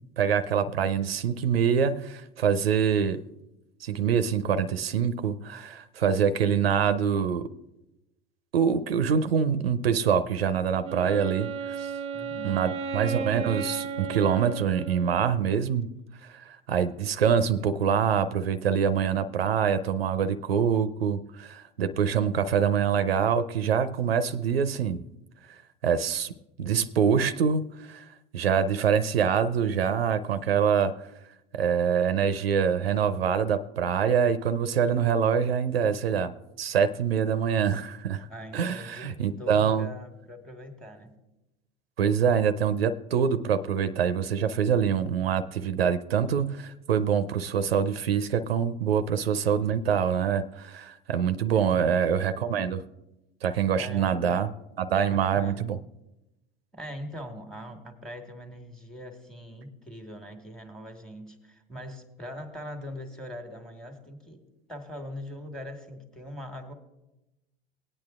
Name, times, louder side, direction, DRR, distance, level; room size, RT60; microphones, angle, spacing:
voice 1, 0.2-3.2 3.8-7.5 8.5-11.5 11.8-11.9 12.4-15.9 16.2-25.0 25.8-26.3 26.6-28.0 28.3-30.9 31.5-38.3 38.5-39.9 42.0-52.8 53.4-54.5 54.8-55.8, right 7 dB, 85° right, 12 dB, 0.5 m, -25 dB
Wind instrument woodwind instrument, 10.8-15.6, right 6 dB, 20° right, 0.6 m, -34 dB
voice 2, 12.1-12.6 17.6-17.7 38.3-41.1 51.5-52.0 53.8-54.4 55.1-55.7 56.7-64.4 64.7-66.7, equal, ahead, 5 dB, 1.4 m, -41 dB
19.5 x 8.9 x 2.4 m, 0.95 s
hypercardioid pair, 85°, 29 cm